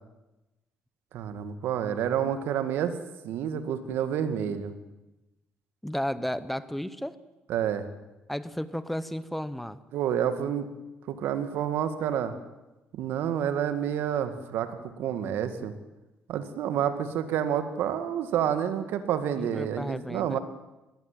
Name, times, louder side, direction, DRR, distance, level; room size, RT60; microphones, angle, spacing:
voice 1, 1.1-3.0 3.2-4.7 7.5-7.9 9.9-10.7 11.1-12.3 12.9-15.7 16.3-20.4, right 9 dB, 85° right, 10 dB, 2.1 m, -29 dB
voice 2, 5.8-7.1 8.3-9.8 19.4-20.4, equal, 5° left, 15 dB, 0.9 m, -33 dB
21.5 x 19.0 x 9.2 m, 1.0 s
cardioid pair, 130°, 4 cm